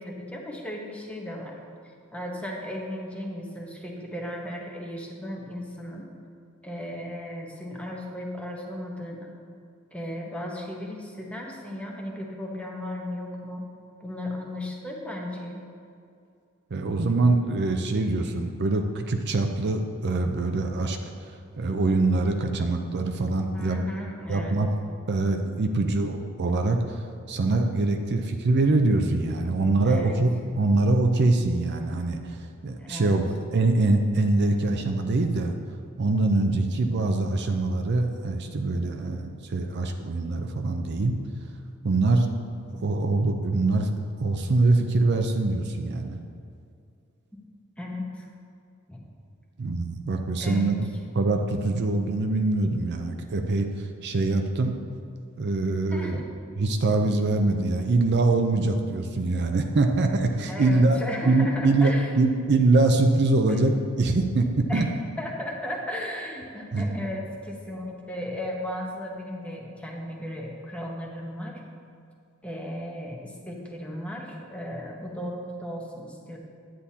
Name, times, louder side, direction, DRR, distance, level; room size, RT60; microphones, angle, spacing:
voice 1, 0.0-1.5 2.1-6.1 6.6-9.3 9.9-13.6 14.0-15.6 23.5-24.6 29.5-29.6 29.8-30.2 32.8-33.2 47.8-48.3 48.9-49.0 50.4-50.8 55.9-56.3 60.5-62.1 63.5-63.6 64.7-64.9 65.2-71.6 72.4-76.4, left 1 dB, 5° left, -1 dB, 0.9 m, -35 dB
voice 2, 16.7-21.0 21.6-23.8 24.3-24.7 25.1-30.3 30.6-33.3 33.5-35.5 36.0-41.2 41.8-42.3 42.8-43.9 44.2-46.2 49.6-50.9 51.2-54.8 55.4-56.2 56.6-61.0 61.2-64.9 66.7-67.0, right 2 dB, 55° right, 5 dB, 0.5 m, -24 dB
9.9 x 8.6 x 2.8 m, 2.4 s
head